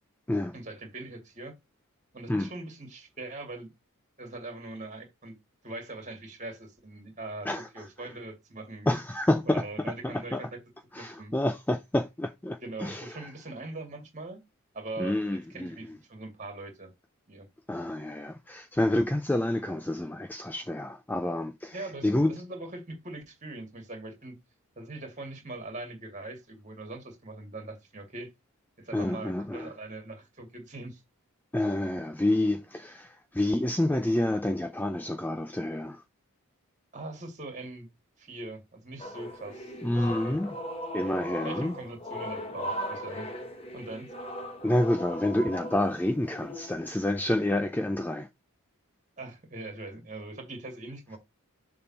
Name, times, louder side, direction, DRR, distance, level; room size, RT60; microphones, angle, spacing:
voice 1, 0.5-1.5 2.1-3.7 4.2-5.4 5.6-8.9 9.4-10.5 11.0-11.3 12.6-14.4 14.7-16.9 17.3-17.5 21.7-24.4 24.8-28.3 28.8-31.0 36.9-37.9 38.2-40.4 41.4-43.3 43.7-44.1 49.2-51.2, right 2 dB, 35° right, 2.2 m, -41 dB
voice 2, 8.9-9.6 10.0-10.4 10.9-13.3 15.0-15.8 17.7-21.8 22.0-22.3 28.9-29.7 31.5-36.0 39.8-40.6 40.9-41.7 44.6-48.3, left 1 dB, 10° left, 0.3 m, -28 dB
sound 1, 39.0-46.7, equal, 25° left, 1.1 m, -38 dB
6.8 x 3.6 x 4.1 m
head